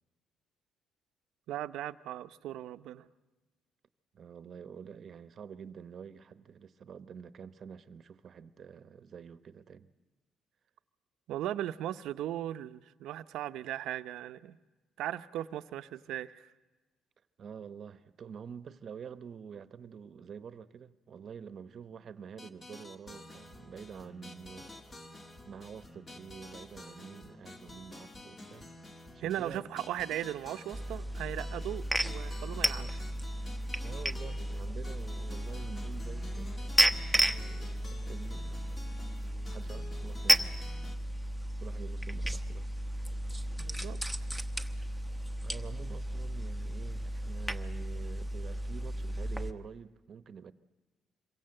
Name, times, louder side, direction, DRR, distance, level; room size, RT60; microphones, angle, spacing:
voice 1, 1.5-3.1 11.3-14.6 15.0-16.5 29.2-32.9 43.6-44.0, right 12 dB, 85° right, 0.8 m, -37 dB
voice 2, 4.1-9.9 17.4-25.0 25.5-28.7 29.1-29.6 32.8-33.0 33.8-36.6 36.9-38.6 39.5-40.6 41.6-42.7 45.4-50.5, right 7 dB, 45° right, 1.0 m, -47 dB
sound 1, 22.4-41.0, left 2 dB, 25° left, 1.7 m, -50 dB
sound 2, 30.7-49.5, right 1 dB, ahead, 1.0 m, -33 dB
26.5 x 23.0 x 7.8 m
cardioid pair, 125°, 0 cm